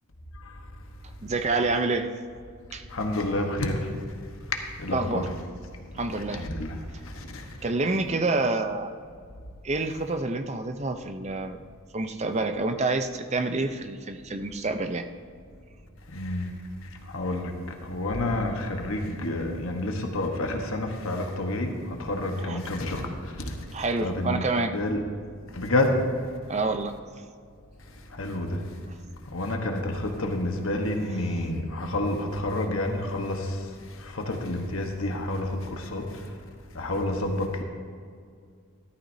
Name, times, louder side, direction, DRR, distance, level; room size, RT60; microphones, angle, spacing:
voice 1, 1.2-2.1 2.7-2.8 4.9-5.3 5.9-6.4 7.6-8.9 9.6-11.6 11.9-15.1 22.4-22.6 23.7-24.7 26.5-26.9 31.3-31.5, right 3 dB, 30° right, 7 dB, 0.6 m, -28 dB
voice 2, 2.9-3.9 4.8-5.2 6.3-6.7 7.1-7.4 16.1-16.5 17.1-17.5 17.8-23.6 24.0-24.4 24.7-25.0 25.5-26.0 28.1-28.6 29.3-33.7 33.9-36.2 36.7-37.6, left 1 dB, 70° left, 3 dB, 1.2 m, -29 dB
14.5 x 13.0 x 2.7 m, 2.2 s
head